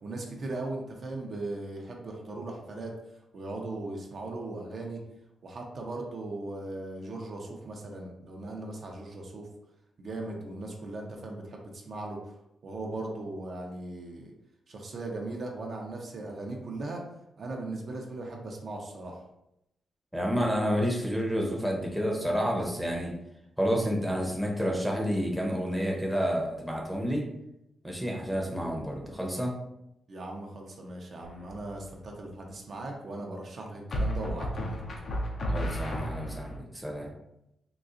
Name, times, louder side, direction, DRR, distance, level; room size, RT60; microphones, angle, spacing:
voice 1, 0.0-2.9 3.3-5.0 5.4-9.5 10.0-12.3 12.6-14.3 14.7-17.0 17.4-19.2 30.1-34.8, right 2 dB, 55° right, 0 dB, 0.6 m, -38 dB
voice 2, 20.1-23.1 23.6-27.3 27.8-29.6 35.5-37.1, equal, ahead, -1 dB, 0.7 m, -29 dB
sound 1, 31.2-31.7 33.9-36.6, equal, 55° left, 0.5 m, -32 dB
3.8 x 2.4 x 2.5 m, 0.84 s
cardioid pair, 100°, 0 cm